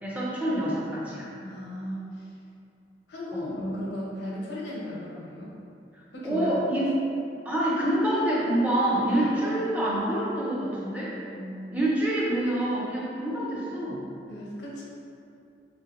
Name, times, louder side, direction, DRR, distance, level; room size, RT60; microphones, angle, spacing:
voice 1, 0.0-1.3 3.3-3.5 6.2-6.9 7.4-11.2 11.7-14.0, right 1 dB, 10° right, -6 dB, 0.4 m, -26 dB
voice 2, 1.4-2.3 3.1-5.5 6.1-6.5 9.0-9.5 11.3-11.7 14.3-14.8, left 1 dB, 80° left, -5 dB, 0.7 m, -36 dB
3.3 x 2.6 x 2.4 m, 2.6 s
head